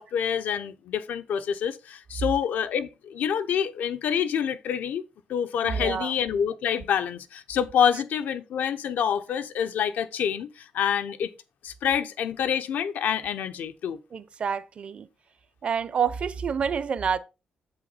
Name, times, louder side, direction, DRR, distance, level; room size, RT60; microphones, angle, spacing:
voice 1, 0.0-5.0 5.3-11.3 11.6-14.0, left 8 dB, 90° left, 0.8 m, -27 dB
voice 2, 5.6-6.1 14.1-15.1 15.6-17.2, right 7 dB, 45° right, 0.6 m, -28 dB
8.0 x 5.8 x 4.1 m
wide cardioid pair, 155°, 3 cm